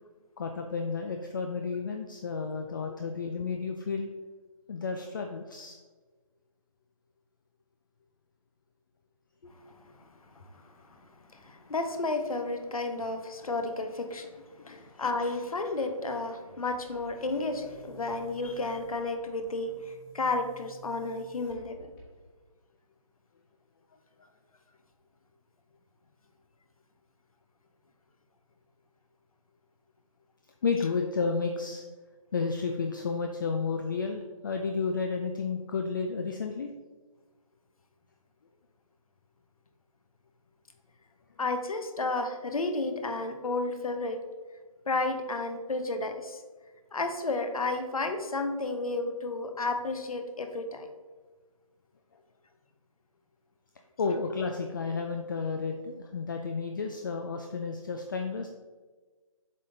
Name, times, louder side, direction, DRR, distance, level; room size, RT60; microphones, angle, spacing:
voice 1, 0.4-4.1 4.7-5.8 14.6-15.0 30.6-31.8 32.3-36.7 54.0-58.5, left 4 dB, 35° left, 4 dB, 0.4 m, -32 dB
voice 2, 9.4-9.7 10.6-10.7 11.3-21.9 41.4-44.2 44.9-46.4 46.9-50.9, left 3 dB, 75° left, 6 dB, 1.0 m, -32 dB
Boom, 16.7-22.5, right 4 dB, 15° left, 1.4 m, -54 dB
7.3 x 4.1 x 3.8 m, 1.4 s
figure-of-eight pair, 155°, 18 cm